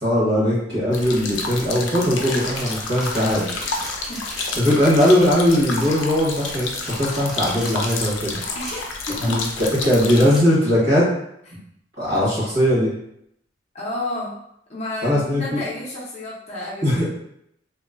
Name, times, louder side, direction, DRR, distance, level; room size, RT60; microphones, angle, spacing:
voice 1, 0.0-3.4 4.6-8.4 9.2-11.1 12.0-12.9 15.0-15.6 16.8-17.1, equal, 60° right, -7 dB, 1.3 m, -19 dB
sound 1, 0.9-10.2, left 3 dB, 90° left, 0.4 m, -30 dB
sound 2, 2.2-9.1 9.7-9.8 10.2-10.4, equal, 5° right, 0.7 m, -38 dB
voice 2, 8.5-9.4 13.7-14.3 14.7-17.1, left 1 dB, 35° left, -4 dB, 0.5 m, -31 dB
2.9 x 2.1 x 2.4 m, 0.76 s
head